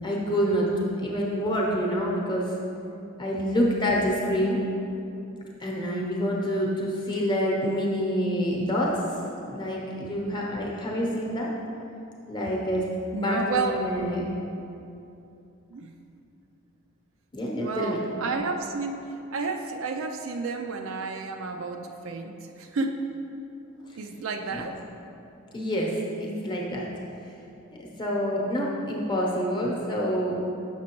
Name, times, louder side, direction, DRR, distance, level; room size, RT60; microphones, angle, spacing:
voice 1, 0.0-2.5 3.2-4.6 5.6-9.0 9.5-11.5 12.3-12.9 13.2-14.3 17.3-18.0 23.9-24.0 24.5-24.6 25.5-26.9 27.8-30.4, equal, 20° left, -3 dB, 0.9 m, -27 dB
voice 2, 13.1-13.8 15.7-15.9 17.6-23.0 24.0-24.8, right 4 dB, 60° right, 4 dB, 0.4 m, -31 dB
7.2 x 5.9 x 3.0 m, 2.8 s
head